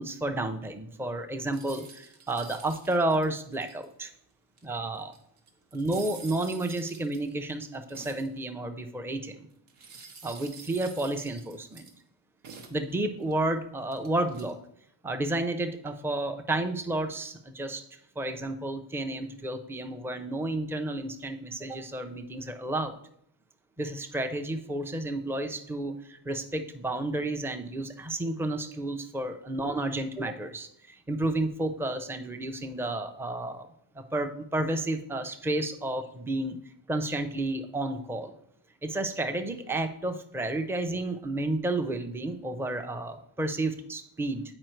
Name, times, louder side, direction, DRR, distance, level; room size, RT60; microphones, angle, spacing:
voice 1, 0.0-4.1 4.6-5.1 5.7-9.5 10.2-11.9 12.7-14.6 15.0-17.8 18.2-23.0 23.8-33.7 34.0-36.6 36.9-38.3 38.8-44.4, right 2 dB, 5° right, 7 dB, 0.5 m, -31 dB
sound 1, 1.5-4.1 4.6-4.7 4.9-8.4 9.7-12.0 12.4-13.3 13.9-14.5, right 5 dB, 85° right, 1.2 m, -48 dB
7.7 x 4.8 x 4.5 m, 0.71 s
cardioid pair, 115°, 48 cm